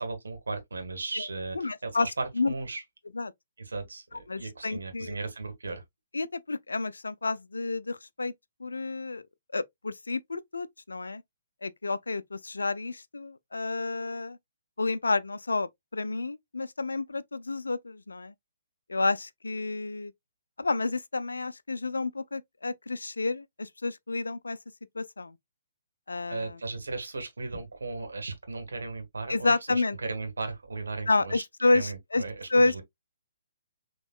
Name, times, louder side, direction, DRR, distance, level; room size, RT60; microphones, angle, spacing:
voice 1, 0.0-2.8 3.6-5.8 26.3-32.8, right 3 dB, 75° right, 1.6 m, -36 dB
voice 2, 1.5-2.1 2.4-2.5 3.1-3.3 4.3-5.2 6.1-8.3 8.6-9.2 9.5-11.2 11.6-14.4 14.8-18.3 18.9-20.1 20.6-24.6 25.0-25.4 26.1-26.6 29.3-30.0 31.1-32.2 32.5-32.7, left 3 dB, 80° left, 0.5 m, -30 dB
6.1 x 3.0 x 2.3 m
figure-of-eight pair, 130°, 0 cm